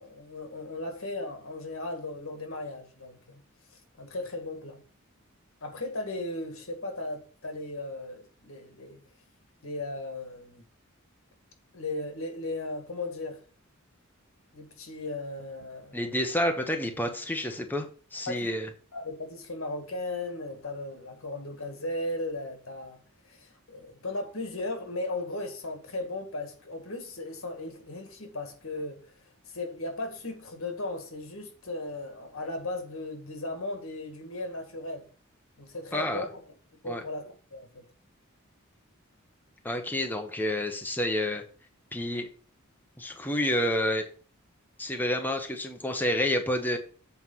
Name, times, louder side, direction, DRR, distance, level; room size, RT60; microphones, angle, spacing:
voice 1, 0.0-3.4 4.0-4.8 5.6-9.0 9.6-10.6 11.7-13.4 14.5-16.1 18.3-18.5 18.9-23.0 23.3-29.2 29.5-35.1 35.6-36.4 36.8-37.8, left 2 dB, 75° left, 1.9 m, -36 dB
voice 2, 15.9-18.7 35.9-36.3 36.8-37.0 39.6-41.4 41.9-42.3 43.0-44.1 44.8-46.8, left 1 dB, 10° left, 0.8 m, -29 dB
8.0 x 4.6 x 5.6 m
head